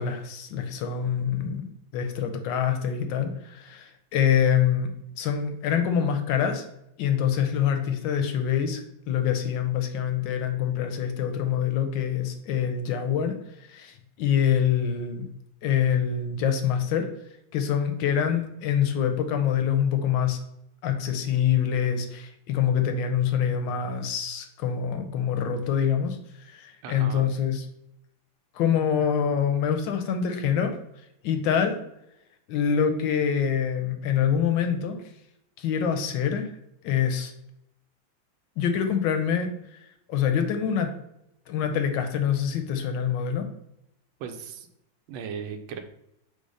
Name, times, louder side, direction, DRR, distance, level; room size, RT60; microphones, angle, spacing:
voice 1, 0.0-4.9 5.2-6.7 7.0-13.4 13.7-15.3 15.6-17.1 17.5-20.4 20.8-26.2 26.5-27.7 28.5-30.8 31.2-31.8 32.5-35.0 35.6-36.5 36.8-37.3 38.6-39.5 40.1-40.9 41.5-43.5, left 8 dB, 75° left, 6 dB, 1.2 m, -25 dB
voice 2, 26.8-27.2 44.2-44.7 45.1-45.8, right 7 dB, 90° right, 7 dB, 1.5 m, -37 dB
5.2 x 2.0 x 4.8 m, 0.81 s
omnidirectional pair, 2.2 m